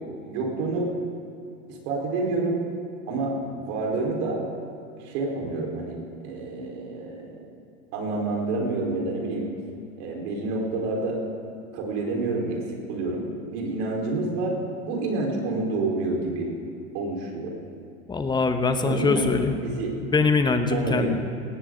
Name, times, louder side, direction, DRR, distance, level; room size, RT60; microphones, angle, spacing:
voice 1, 0.2-0.9 1.7-2.6 3.1-4.4 5.0-7.4 7.9-9.5 10.0-11.2 11.7-13.3 13.5-14.6 14.8-16.5 16.9-17.5 18.8-19.2 19.6-19.9 20.7-21.2, right 3 dB, 55° right, -1 dB, 4.6 m, -28 dB
voice 2, 18.1-19.6 20.0-21.2, left 4 dB, 10° left, 7 dB, 1.0 m, -23 dB
19.0 x 16.0 x 3.9 m, 2.6 s
supercardioid pair, 120°, 41 cm